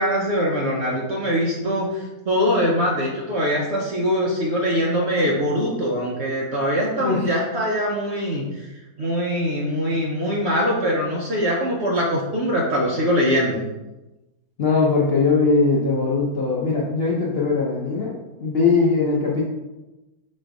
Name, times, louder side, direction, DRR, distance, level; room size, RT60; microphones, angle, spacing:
voice 1, 0.0-8.7 9.0-13.6, equal, 60° right, -3 dB, 0.7 m, -22 dB
voice 2, 7.0-7.3 14.6-18.1 18.4-19.4, left 4 dB, 65° left, -4 dB, 0.6 m, -20 dB
4.2 x 2.6 x 4.5 m, 1.0 s
omnidirectional pair, 1.7 m